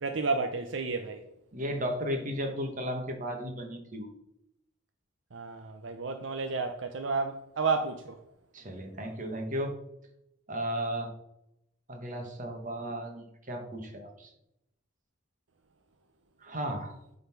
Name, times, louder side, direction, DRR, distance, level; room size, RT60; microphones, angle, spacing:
voice 1, 0.0-1.2 5.3-8.2, right 4 dB, 70° right, 0.6 m, -31 dB
voice 2, 1.5-4.1 8.5-9.7 10.5-11.1 11.9-14.3 16.4-16.9, equal, 40° right, 1.5 m, -34 dB
8.4 x 4.0 x 5.9 m
head